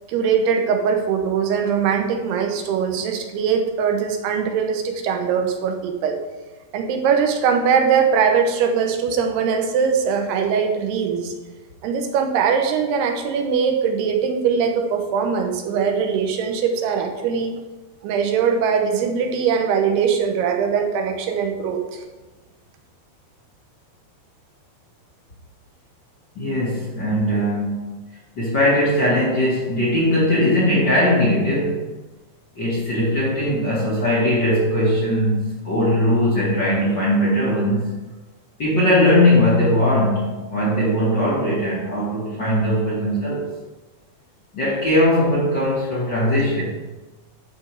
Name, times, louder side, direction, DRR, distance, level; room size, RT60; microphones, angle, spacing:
voice 1, 0.1-6.2 6.7-11.3 11.8-17.5 18.0-22.0, right 6 dB, 90° right, 4 dB, 3.0 m, -21 dB
voice 2, 26.3-28.0 28.3-31.9 32.5-38.0 38.6-43.4 44.5-46.7, left 1 dB, 45° left, -7 dB, 1.5 m, -19 dB
12.0 x 4.7 x 4.7 m, 1.2 s
omnidirectional pair, 4.5 m